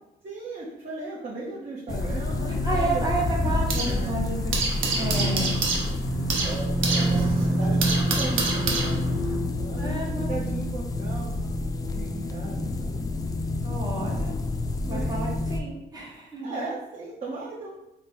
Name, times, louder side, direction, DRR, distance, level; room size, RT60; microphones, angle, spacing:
voice 1, 0.2-3.1 3.7-4.1 6.4-11.5 11.9-13.0 14.8-15.2 16.4-17.7, right 2 dB, 40° right, -6 dB, 0.9 m, -37 dB
sound 1, 1.9-15.6, left 1 dB, 20° left, 0.3 m, -27 dB
sound 2, 1.9-4.0 4.3-9.4, right 3 dB, 90° right, 0.7 m, -29 dB
voice 2, 2.6-5.8 7.0-7.1 9.8-10.4 13.6-14.3 14.9-16.6, right 2 dB, 20° right, -4 dB, 1.2 m, -32 dB
3.3 x 2.2 x 4.1 m, 0.87 s
cardioid pair, 90°, 20 cm